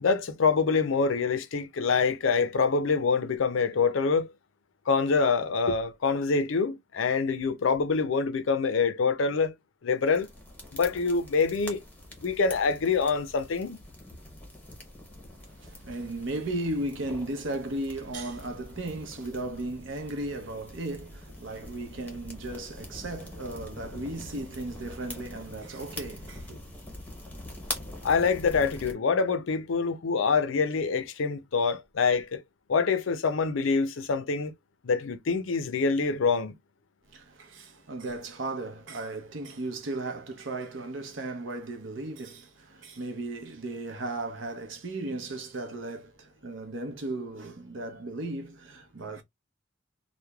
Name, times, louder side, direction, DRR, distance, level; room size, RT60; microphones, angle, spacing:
voice 1, 0.0-4.3 4.9-9.5 9.8-10.3 10.7-11.8 12.2-13.8 28.0-32.4 32.7-34.5 34.8-36.6, left 5 dB, 85° left, 0.5 m, -25 dB
sound 1, 10.0-28.9, left 1 dB, 10° left, 0.7 m, -44 dB
voice 2, 15.4-26.6 37.1-49.2, right 2 dB, 75° right, 0.7 m, -36 dB
3.1 x 2.1 x 2.3 m
head